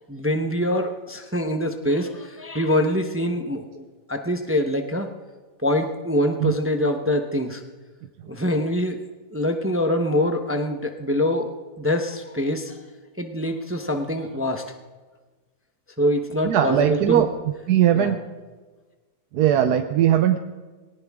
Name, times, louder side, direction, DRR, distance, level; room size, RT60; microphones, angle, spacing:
voice 1, 0.1-3.8 4.1-5.1 5.6-7.6 8.3-9.0 9.3-11.5 11.8-12.8 13.2-14.6 16.0-17.2 17.9-18.2, left 1 dB, 10° right, 5 dB, 0.7 m, -24 dB
voice 2, 16.4-17.3 17.7-18.2 19.3-20.4, right 11 dB, 80° right, 8 dB, 1.2 m, -19 dB
18.5 x 18.5 x 3.6 m, 1.3 s
omnidirectional pair, 1.7 m